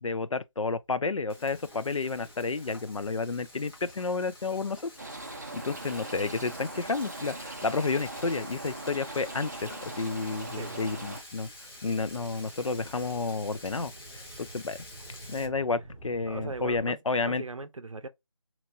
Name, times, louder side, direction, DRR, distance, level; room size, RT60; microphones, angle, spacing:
voice 1, 0.0-4.9 5.5-11.5 11.8-14.8 15.3-17.4, left 4 dB, 85° left, 0.4 m, -31 dB
Frying (food), 1.3-15.5, left 1 dB, 45° left, 1.4 m, -49 dB
sound 1, 1.5-8.2 8.8-16.8, right 1 dB, 25° left, 1.0 m, -52 dB
sound 2, 5.0-11.2, right 2 dB, 35° right, 0.4 m, -41 dB
voice 2, 16.3-18.1, right 3 dB, 90° right, 0.5 m, -39 dB
2.9 x 2.6 x 2.6 m
figure-of-eight pair, 165°, 16 cm